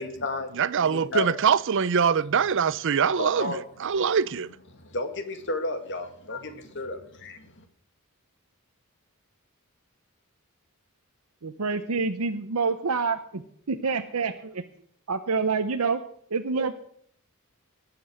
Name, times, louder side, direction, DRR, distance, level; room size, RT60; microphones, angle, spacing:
voice 1, 0.0-1.4 3.2-3.7 4.7-7.6, left 2 dB, 55° left, 2.0 m, -33 dB
voice 2, 0.5-4.5, right 6 dB, 55° right, 0.5 m, -23 dB
voice 3, 11.4-13.4 13.7-14.6 15.1-16.0 16.3-16.7, right 4 dB, 80° right, 0.8 m, -27 dB
19.5 x 7.8 x 6.4 m
head